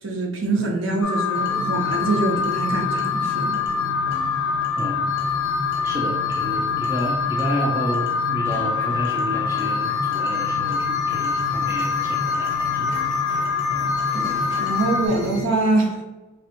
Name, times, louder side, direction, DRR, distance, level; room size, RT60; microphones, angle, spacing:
voice 1, 0.0-3.6 14.1-16.0, right 2 dB, 60° right, 1 dB, 0.6 m, -24 dB
Alarm, 1.0-15.1, left 6 dB, 75° left, 0.4 m, -24 dB
sound 1, 1.3-15.4, right 1 dB, 25° left, 0.7 m, -33 dB
voice 2, 5.8-12.9, right 1 dB, 10° right, -3 dB, 0.3 m, -30 dB
3.4 x 2.1 x 2.8 m, 1.2 s
head